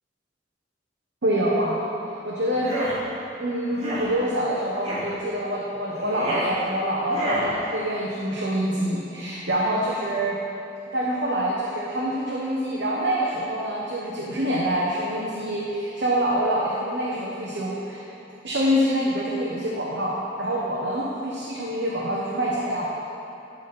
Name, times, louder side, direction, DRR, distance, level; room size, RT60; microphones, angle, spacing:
voice 1, 1.2-1.8 2.2-2.7 3.4-10.4 10.9-18.0 18.4-22.9, equal, 70° right, -6 dB, 1.1 m, -26 dB
sound 1, 2.5-3.0 3.7-4.1 4.8-5.1 5.9-6.5 7.1-7.5, equal, 35° right, 2.1 m, -28 dB
12.0 x 4.2 x 5.3 m, 2.8 s
head